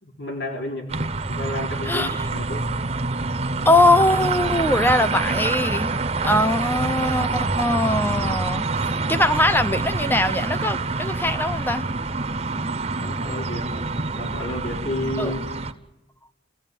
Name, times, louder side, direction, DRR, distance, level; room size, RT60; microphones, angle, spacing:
voice 1, 0.0-2.7 13.0-15.4, left 1 dB, 90° left, 1 dB, 3.9 m, -32 dB
sound 1, 0.9-15.7, right 3 dB, 35° right, 1.0 m, -26 dB
voice 2, 3.7-5.9 6.2-8.7 9.1-11.9 15.2-15.3, left 1 dB, 10° left, 11 dB, 0.8 m, -21 dB
28.5 x 15.5 x 9.2 m, 1.0 s
head